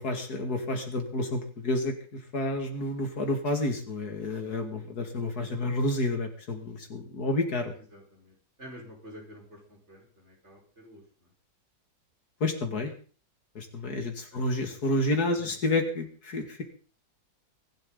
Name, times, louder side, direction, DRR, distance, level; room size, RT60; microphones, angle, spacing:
voice 1, 0.0-1.9 2.3-7.7 12.4-12.9 13.5-16.6, left 2 dB, 80° left, 4 dB, 2.9 m, -29 dB
voice 2, 7.8-11.3 13.8-14.6 15.3-15.5, equal, 45° right, -1 dB, 5.4 m, -50 dB
23.5 x 12.0 x 4.0 m, 0.40 s
omnidirectional pair, 1.6 m